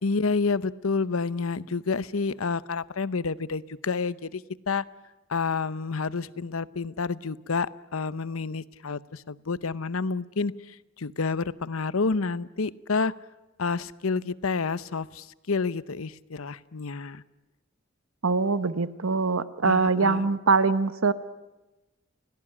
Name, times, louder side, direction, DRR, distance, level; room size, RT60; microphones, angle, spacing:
voice 1, 0.0-4.8 5.3-13.1 13.6-17.2 19.6-20.3, left 4 dB, 85° left, 17 dB, 0.8 m, -29 dB
voice 2, 18.2-21.1, right 4 dB, 80° right, 14 dB, 1.0 m, -23 dB
29.5 x 17.5 x 9.9 m, 1.1 s
head